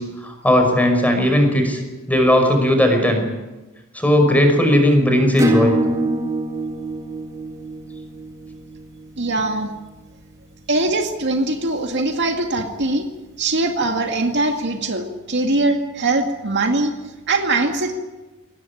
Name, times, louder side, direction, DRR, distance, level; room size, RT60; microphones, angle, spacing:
voice 1, 0.0-1.8 2.1-3.2 3.9-5.8, left 1 dB, 5° left, 4 dB, 5.5 m, -17 dB
Acoustic guitar / Strum, 5.4-10.6, right 1 dB, 15° right, 2.6 m, -25 dB
voice 2, 9.2-9.7 10.7-13.1 13.4-16.9 17.3-18.0, right 2 dB, 55° right, 4 dB, 2.2 m, -21 dB
22.5 x 19.0 x 10.0 m, 1.1 s
head